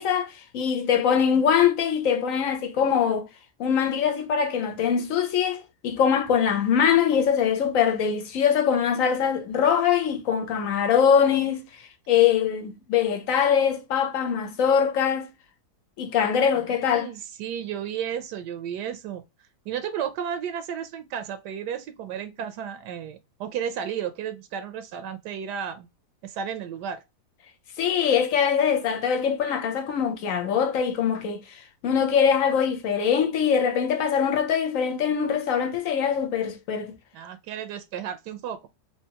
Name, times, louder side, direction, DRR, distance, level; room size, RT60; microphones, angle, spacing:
voice 1, 0.0-3.3 3.6-11.6 12.1-15.3 16.0-17.1 27.8-36.9, left 7 dB, 60° left, 1.0 m, -23 dB
voice 2, 16.5-19.2 19.7-25.9 26.2-27.0 37.1-38.7, right 8 dB, 80° right, 1.2 m, -33 dB
3.3 x 2.9 x 2.7 m
omnidirectional pair, 1.8 m